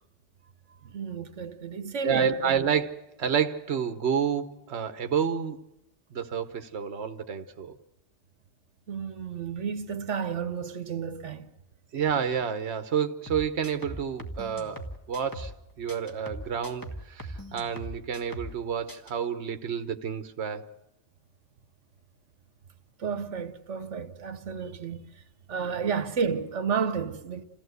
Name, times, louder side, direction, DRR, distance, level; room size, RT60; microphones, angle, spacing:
voice 1, 0.8-2.6 8.9-11.5 23.0-25.0 25.5-27.4, right 6 dB, 85° right, 1.4 m, -32 dB
voice 2, 2.0-5.6 6.1-7.8 11.9-20.7 25.6-25.9, right 7 dB, 65° right, 1.3 m, -29 dB
sound 1, 13.3-15.6 15.9-18.6 18.9-19.1, right 1 dB, 15° left, 1.8 m, -40 dB
28.0 x 15.5 x 8.0 m
omnidirectional pair, 1.2 m